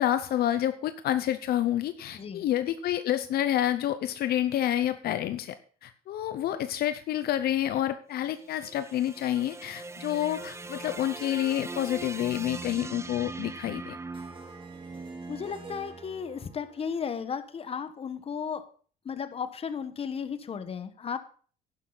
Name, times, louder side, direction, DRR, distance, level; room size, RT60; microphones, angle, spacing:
voice 1, 0.0-14.0, left 12 dB, 65° left, 11 dB, 0.8 m, -28 dB
voice 2, 2.1-2.5 15.3-18.7 19.0-21.2, left 6 dB, 35° left, 11 dB, 1.2 m, -34 dB
sound 1, 8.2-16.5, right 3 dB, 15° right, 0.8 m, -41 dB
sound 2, 12.9-13.0 14.1-17.7, right 4 dB, 30° right, 5.0 m, -52 dB
11.5 x 11.0 x 4.0 m, 0.43 s
cardioid pair, 110°, 17 cm